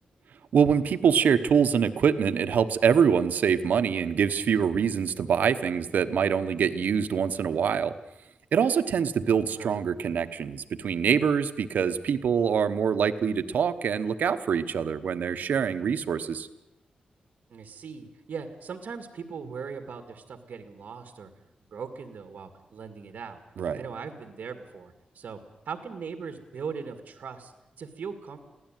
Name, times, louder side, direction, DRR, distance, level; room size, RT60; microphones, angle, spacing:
voice 1, 0.5-7.9 8.5-16.5 23.6-23.8, right 7 dB, 90° right, 11 dB, 1.1 m, -24 dB
voice 2, 17.5-21.3 21.7-23.4 23.8-25.4 25.7-28.4, right 6 dB, 75° right, 7 dB, 2.1 m, -39 dB
23.0 x 16.5 x 9.1 m, 0.92 s
wide cardioid pair, 125°, 3 cm